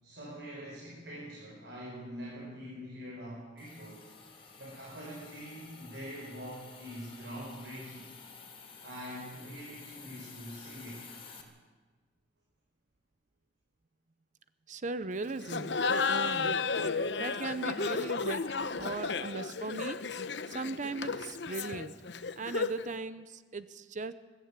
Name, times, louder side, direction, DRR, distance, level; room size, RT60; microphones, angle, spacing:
voice 1, 0.0-4.0 4.6-8.1 8.8-11.0, equal, 65° right, -5 dB, 6.3 m, -44 dB
Hiss, 3.6-11.4, left 5 dB, 30° left, 3.2 m, -51 dB
voice 2, 14.7-15.8 16.1-16.6 17.2-20.0 20.5-21.9 22.4-24.1, right 3 dB, 45° right, 13 dB, 0.7 m, -38 dB
Laughter, 15.4-22.9, left 4 dB, 70° left, 0.9 m, -33 dB
21.0 x 14.5 x 8.9 m, 1.4 s
head